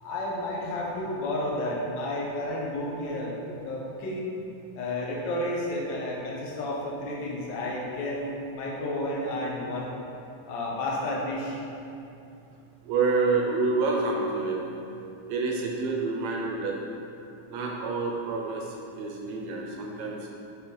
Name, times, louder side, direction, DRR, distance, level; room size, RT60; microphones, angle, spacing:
voice 1, 0.0-3.4 3.6-4.3 4.7-9.9 10.5-11.6, left 1 dB, 75° left, -4 dB, 1.0 m, -31 dB
voice 2, 12.8-14.6 15.3-16.8 17.5-20.2, right 3 dB, 75° right, 0 dB, 1.7 m, -28 dB
5.0 x 4.6 x 5.4 m, 2.7 s
omnidirectional pair, 3.5 m